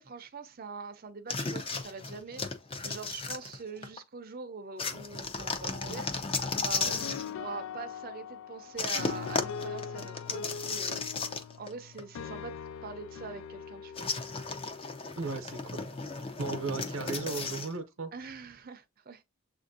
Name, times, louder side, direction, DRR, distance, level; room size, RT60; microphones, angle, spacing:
voice 1, 0.0-2.4 2.8-6.3 6.6-14.1 18.1-19.2, right 4 dB, 45° right, 0.5 m, -43 dB
sound 1, 1.3-4.0 4.8-7.3 8.8-11.7 12.0-12.1 14.0-17.7, left 4 dB, 25° left, 0.6 m, -35 dB
sound 2, 6.6-15.2, left 7 dB, 75° left, 0.3 m, -42 dB
voice 2, 15.2-15.8 16.4-18.1, right 4 dB, 85° right, 0.7 m, -36 dB
7.2 x 2.6 x 2.6 m
head